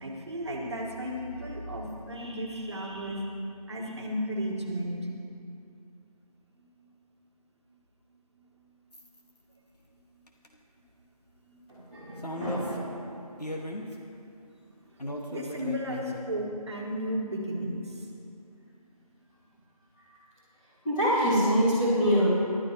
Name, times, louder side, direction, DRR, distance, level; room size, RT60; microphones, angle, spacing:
voice 1, 0.0-3.4 3.7-5.2 6.6-6.7 8.4-8.5 9.9-10.0 11.3-11.7 14.8-14.9 15.3-18.1, equal, 45° right, 0 dB, 1.6 m, -34 dB
sound 1, 8.9-9.2 10.3-10.5 12.2-12.8 13.4-13.9 15.0-16.2, left 1 dB, 90° left, 1.6 m, -37 dB
voice 2, 11.9-12.9 20.8-22.3, equal, 10° left, -13 dB, 2.6 m, -25 dB
15.5 x 12.0 x 3.0 m, 2.5 s
figure-of-eight pair, 165°, 20 cm